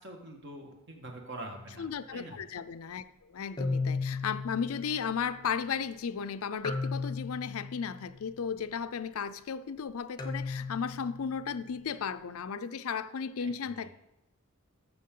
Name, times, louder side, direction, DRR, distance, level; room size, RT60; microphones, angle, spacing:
voice 1, 0.0-2.4 13.4-13.9, right 1 dB, 55° right, 2 dB, 1.7 m, -45 dB
sound 1, 1.6-1.9 3.6-5.5 6.6-8.3 10.2-11.7, left 4 dB, 20° left, 0.7 m, -36 dB
voice 2, 1.8-13.9, left 6 dB, 75° left, 12 dB, 0.5 m, -35 dB
14.0 x 6.2 x 3.8 m, 0.95 s
head